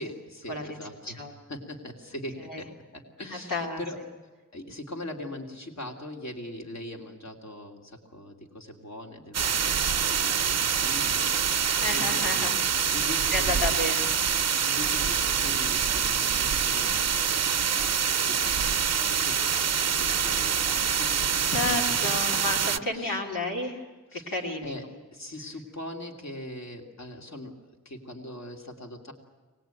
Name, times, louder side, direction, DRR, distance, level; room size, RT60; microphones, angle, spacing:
voice 1, 0.0-1.2 1.5-4.0 4.5-12.5 12.9-14.0 14.6-18.0 18.3-19.7 20.0-21.1 22.9-23.2 24.1-24.8 25.1-27.6 27.8-29.1, left 1 dB, 55° left, 2 dB, 3.1 m, -41 dB
voice 2, 3.3-3.8 11.8-12.5 13.3-14.1 21.5-23.8 24.1-24.7, left 2 dB, 85° left, 0 dB, 2.8 m, -31 dB
sound 1, 9.3-22.8, right 7 dB, 50° right, 0.7 m, -25 dB
24.0 x 19.5 x 9.1 m, 1.3 s
wide cardioid pair, 85°, 32 cm